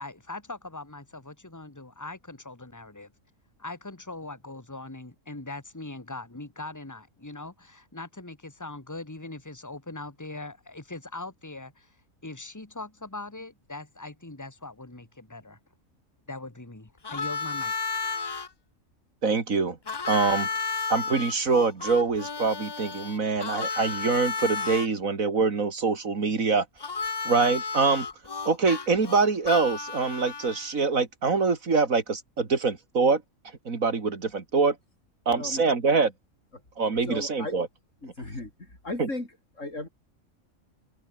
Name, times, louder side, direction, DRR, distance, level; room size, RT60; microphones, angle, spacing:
voice 1, 0.0-3.1 3.6-11.9 12.2-15.6 16.3-18.0, left 2 dB, 15° left, 2.2 m, -41 dB
Harmonica, 17.0-18.5 19.9-24.9 26.8-30.7, left 4 dB, 35° left, 0.4 m, -32 dB
voice 2, 19.2-19.8 20.1-20.5 20.9-26.7 27.2-28.1 28.4-33.2 33.6-34.8 35.3-36.1 36.8-37.7 39.0-39.1, right 4 dB, 80° right, 2.9 m, -24 dB
voice 3, 35.3-35.7 37.1-37.6 38.0-39.3 39.6-39.9, left 2 dB, 65° left, 5.7 m, -35 dB
omnidirectional pair, 1.4 m